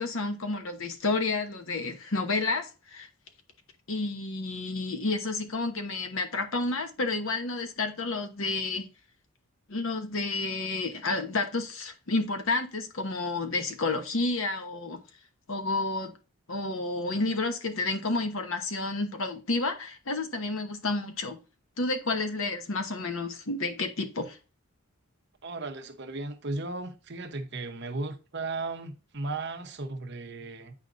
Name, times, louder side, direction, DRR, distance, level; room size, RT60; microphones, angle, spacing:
voice 1, 0.0-3.1 3.9-8.9 9.7-15.0 15.5-16.1 16.5-21.4 21.8-24.4, left 3 dB, 65° left, 1.0 m, -30 dB
voice 2, 25.4-30.7, right 3 dB, 50° right, 0.9 m, -36 dB
8.5 x 5.0 x 2.6 m
head